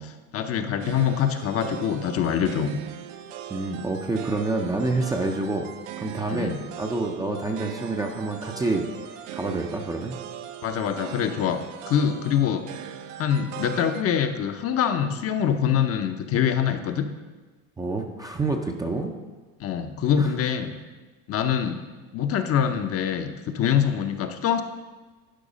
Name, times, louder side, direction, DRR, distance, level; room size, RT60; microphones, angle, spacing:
voice 1, 0.0-2.8 6.3-6.6 10.6-11.6 11.9-12.6 13.2-17.0 19.6-20.7 21.3-21.8 22.1-24.6, left 8 dB, 35° left, 7 dB, 0.6 m, -24 dB
sound 1, 0.8-14.0, right 9 dB, 65° right, 0.8 m, -39 dB
voice 2, 3.5-5.6 6.0-10.2 17.8-19.1 20.2-20.3, right 2 dB, 10° right, 2 dB, 0.5 m, -28 dB
11.5 x 4.6 x 5.0 m, 1.3 s
supercardioid pair, 120°, 40 cm